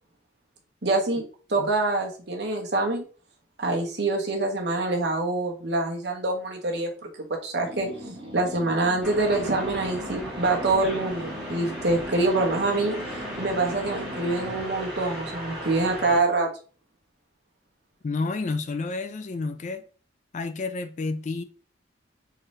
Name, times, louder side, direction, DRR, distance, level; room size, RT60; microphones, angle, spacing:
voice 1, 0.8-1.2 1.5-3.0 3.6-6.9 7.4-7.9 8.3-13.0 13.4-16.5, right 2 dB, 60° right, 1.0 m, -25 dB
sound 1, 7.6-14.7, equal, 30° right, 1.4 m, -40 dB
sound 2, 9.0-16.2, right 1 dB, 5° right, 1.2 m, -36 dB
voice 2, 18.0-19.8 20.3-21.4, left 3 dB, 40° left, 0.3 m, -30 dB
3.8 x 2.7 x 3.2 m
head